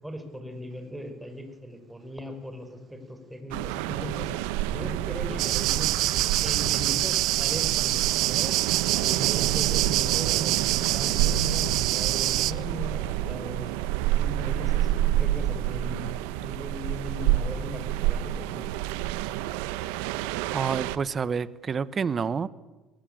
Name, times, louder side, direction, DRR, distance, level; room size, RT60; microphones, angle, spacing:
voice 1, 0.0-4.3 4.7-13.7 14.2-18.7, equal, 5° right, 6 dB, 5.1 m, -38 dB
sound 1, 3.5-21.0, right 13 dB, 85° right, 1.0 m, -29 dB
sound 2, 5.4-12.5, right 16 dB, 70° right, 0.7 m, -26 dB
voice 2, 20.5-22.5, right 6 dB, 35° right, 17 dB, 1.1 m, -28 dB
22.5 x 19.5 x 9.0 m, 1.2 s
supercardioid pair, 90°, 0 cm